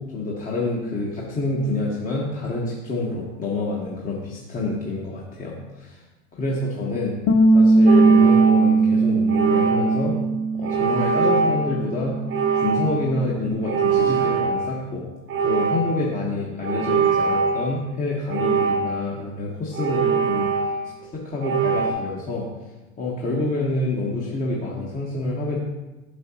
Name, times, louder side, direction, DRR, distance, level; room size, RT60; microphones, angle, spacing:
voice 1, 0.1-6.0 6.3-7.2 7.5-10.2 10.5-12.1 12.6-15.0 15.4-20.7 21.1-22.5 23.0-25.6, left 2 dB, 20° left, -4 dB, 1.2 m, -27 dB
Bass guitar, 7.3-13.5, right 3 dB, 70° left, 1.0 m, -19 dB
sound 1, 7.9-8.9 9.3-10.1 10.6-11.7 12.3-13.1 13.6-14.9 15.3-16.1 16.6-17.7 18.3-19.2 19.7-21.0 21.4-21.9, right 5 dB, 35° right, 0.9 m, -23 dB
7.8 x 6.0 x 2.9 m, 1.1 s
hypercardioid pair, 95°, 36 cm